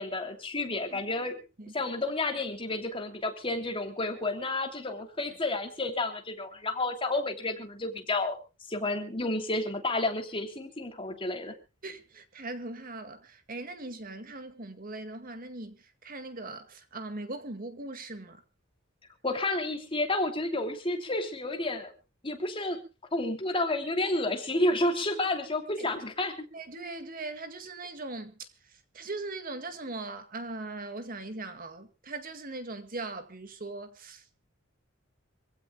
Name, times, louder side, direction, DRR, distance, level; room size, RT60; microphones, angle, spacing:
voice 1, 0.0-1.4 1.7-8.4 8.7-11.5 19.2-21.9 22.2-22.8 23.1-26.5, left 2 dB, 25° left, 2.9 m, -30 dB
voice 2, 11.8-18.4 25.8-25.9 26.5-34.3, right 2 dB, 45° right, 2.0 m, -40 dB
26.0 x 16.5 x 2.3 m
head